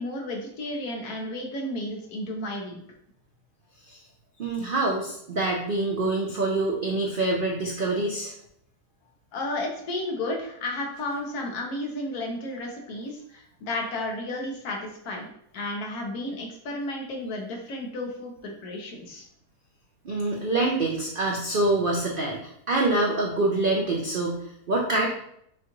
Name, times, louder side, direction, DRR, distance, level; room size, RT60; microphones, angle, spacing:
voice 1, 0.0-2.8 9.3-15.3 15.5-19.2, left 1 dB, 70° left, 1 dB, 1.4 m, -33 dB
voice 2, 4.4-8.3 20.0-22.4 22.7-25.1, right 2 dB, 75° right, -1 dB, 0.5 m, -25 dB
6.5 x 2.4 x 3.0 m, 0.71 s
omnidirectional pair, 1.7 m